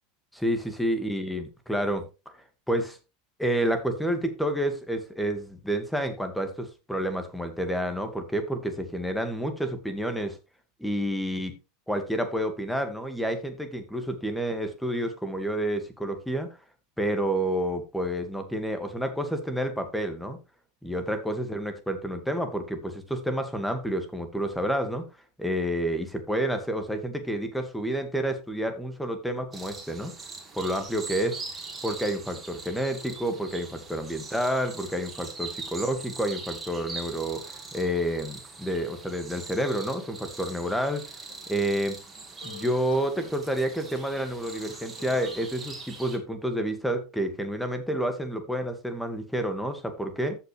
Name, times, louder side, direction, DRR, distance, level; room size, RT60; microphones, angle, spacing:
voice 1, 0.3-2.3 2.7-3.0 3.4-10.4 10.8-11.5 11.9-16.5 17.0-20.4 20.8-25.0 25.4-30.1 30.6-31.4 31.8-41.0 41.5-42.0 42.4-50.4, right 1 dB, 5° left, 8 dB, 1.9 m, -29 dB
sound 1, 29.5-46.2, right 3 dB, 15° right, 3.2 m, -42 dB
sound 2, 41.3-45.5, left 5 dB, 55° left, 2.7 m, -48 dB
14.5 x 5.8 x 3.3 m, 0.28 s
figure-of-eight pair, 80°, 0 cm